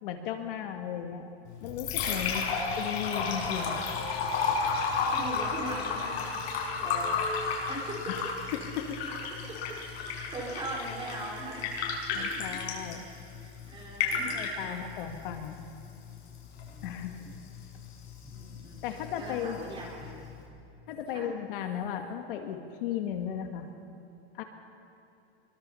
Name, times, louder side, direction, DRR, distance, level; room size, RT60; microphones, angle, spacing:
voice 1, 0.0-1.3 1.6-2.5 2.8-3.8 8.1-8.2 8.5-9.0 12.1-13.1 14.4-15.6 16.8-17.2 18.8-19.6 20.9-23.7 24.3-24.4, left 9 dB, 55° left, 5 dB, 1.9 m, -35 dB
Liquid, 1.4-20.5, left 5 dB, 75° left, 6.1 m, -34 dB
voice 2, 2.2-2.6 5.1-6.3 6.8-7.1 7.7-8.1 9.3-11.8 12.3-12.4 12.9-14.3 14.6-14.8 16.7-17.3 18.2-20.3 21.1-21.3, right 1 dB, 15° right, -3 dB, 4.3 m, -41 dB
24.0 x 23.0 x 5.7 m, 2.8 s
supercardioid pair, 175°, 32 cm